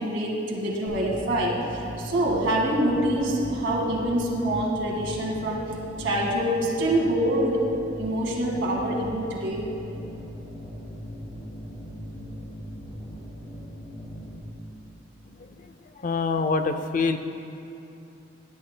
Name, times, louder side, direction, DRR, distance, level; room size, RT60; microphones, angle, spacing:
voice 1, 0.0-5.6 6.0-7.6 8.0-9.7, right 1 dB, 70° right, -3 dB, 2.0 m, -25 dB
sound 1, 0.9-14.4, equal, 65° left, 2.6 m, -39 dB
voice 2, 15.2-17.2, left 4 dB, 45° left, 8 dB, 0.5 m, -27 dB
18.0 x 11.0 x 2.2 m, 2.8 s
head